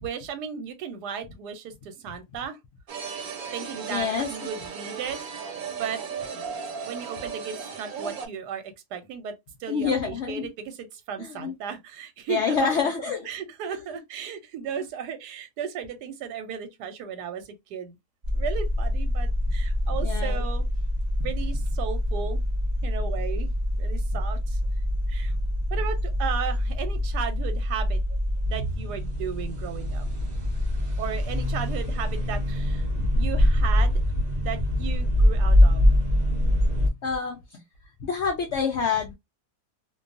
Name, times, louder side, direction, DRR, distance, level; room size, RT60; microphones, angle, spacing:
voice 1, 0.0-2.6 3.5-6.0 6.3-6.5 6.8-8.6 8.9-9.3 9.6-18.0 18.3-20.6 21.2-22.4 22.8-24.6 25.1-25.3 25.7-28.2 28.4-30.1 31.0-32.9 33.2-34.0 34.4-35.9, right 7 dB, 85° right, 1.2 m, -35 dB
sound 1, 2.9-8.3, right 6 dB, 70° right, 1.1 m, -36 dB
voice 2, 3.9-4.3 9.7-10.5 11.2-11.5 12.3-13.3 13.7-13.8 20.0-20.4 32.9-33.1 37.0-37.6 38.0-39.1, left 6 dB, 75° left, 0.6 m, -27 dB
sound 2, 18.2-36.9, left 1 dB, 45° right, 0.5 m, -24 dB
2.6 x 2.3 x 2.4 m
omnidirectional pair, 1.7 m